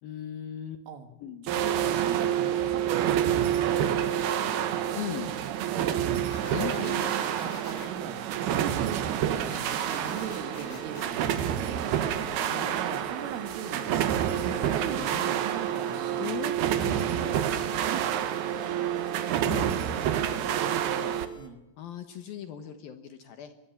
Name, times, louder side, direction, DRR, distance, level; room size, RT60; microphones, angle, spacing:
voice 1, 0.0-0.8 1.2-1.5 5.0-5.3 6.5-7.1 12.5-12.8 16.2-17.6 19.2-19.8 21.8-23.5, left 10 dB, 65° left, 9 dB, 2.5 m, -38 dB
voice 2, 1.4-3.9 5.6-6.1 6.6-12.1 12.6-16.4 17.9-18.2 20.1-21.6, right 7 dB, 85° right, 9 dB, 4.4 m, -39 dB
sound 1, 1.5-21.3, right 10 dB, 65° right, 2.9 m, -28 dB
sound 2, 6.3-7.9 9.5-11.1, left 4 dB, 45° left, 5.8 m, -46 dB
sound 3, 9.7-21.5, left 8 dB, 15° left, 2.0 m, -49 dB
24.0 x 20.5 x 7.2 m, 0.96 s
omnidirectional pair, 5.5 m